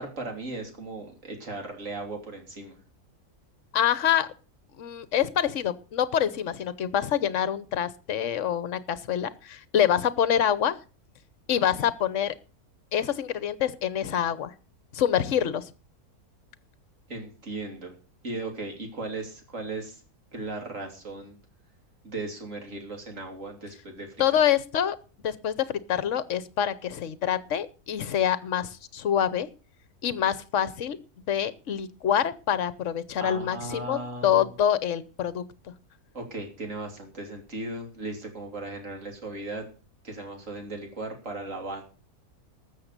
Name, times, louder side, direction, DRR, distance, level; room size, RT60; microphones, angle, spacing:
voice 1, 0.0-2.8 17.1-17.9 18.2-20.0 20.3-21.4 22.0-24.4 33.2-34.5 36.1-39.7 40.0-41.8, right 2 dB, 55° right, 3 dB, 3.4 m, -37 dB
voice 2, 3.7-4.3 4.8-10.8 11.5-12.3 12.9-14.5 14.9-15.7 24.2-25.0 25.2-29.5 30.0-31.0 31.3-35.4, left 9 dB, 60° left, 16 dB, 1.2 m, -26 dB
13.5 x 7.6 x 6.6 m, 0.36 s
omnidirectional pair, 1.6 m